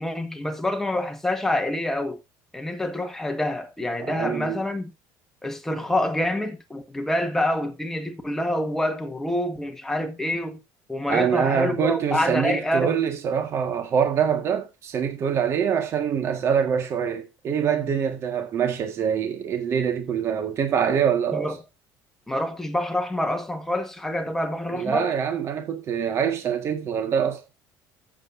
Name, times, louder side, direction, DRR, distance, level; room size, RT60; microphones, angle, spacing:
voice 1, 0.0-2.2 2.5-4.9 5.4-10.6 10.9-12.9 21.3-21.6 22.3-25.1, left 1 dB, 5° left, 1.6 m, -27 dB
voice 2, 4.0-4.6 11.1-21.5 24.7-27.4, right 7 dB, 40° right, 1.8 m, -24 dB
14.5 x 7.8 x 2.7 m
cardioid pair, 155°, 7 cm